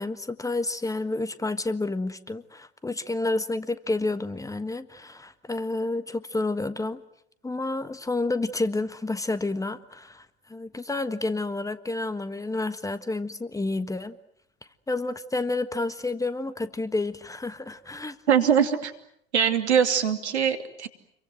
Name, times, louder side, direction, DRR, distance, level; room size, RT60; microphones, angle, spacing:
voice 1, 0.0-7.0 7.4-14.2 14.9-18.2, left 2 dB, 10° left, 13 dB, 1.5 m, -30 dB
voice 2, 18.3-18.9 19.3-20.9, right 8 dB, 80° right, 8 dB, 2.8 m, -22 dB
29.0 x 23.5 x 7.9 m, 0.71 s
hypercardioid pair, 85°, 33 cm